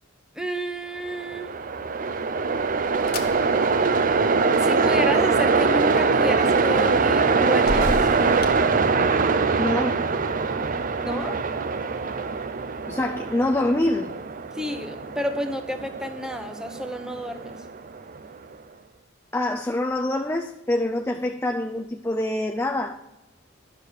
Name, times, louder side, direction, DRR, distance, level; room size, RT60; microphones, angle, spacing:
voice 1, 0.3-1.5 4.6-7.9 11.0-11.4 14.5-17.6, equal, 5° right, 6 dB, 0.9 m, -30 dB
Train, 1.1-18.3, right 4 dB, 40° right, 0.5 m, -23 dB
sound 1, 2.3-9.4, left 1 dB, 50° left, 1.1 m, -37 dB
voice 2, 9.6-10.0 12.9-14.1 19.3-22.9, left 1 dB, 10° left, 4 dB, 0.5 m, -25 dB
12.0 x 6.7 x 6.4 m, 0.98 s
head